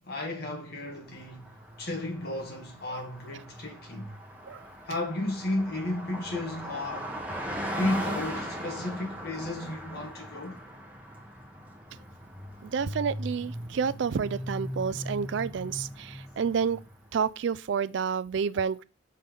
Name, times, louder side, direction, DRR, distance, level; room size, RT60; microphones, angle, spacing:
voice 1, 0.0-4.1 4.8-7.1 7.6-10.6, left 2 dB, 50° left, 1.6 m, -33 dB
Car passing by, 1.0-17.1, equal, 5° right, 1.1 m, -39 dB
voice 2, 12.6-16.8 17.1-18.8, right 6 dB, 60° right, 0.3 m, -29 dB
5.6 x 3.4 x 5.3 m
head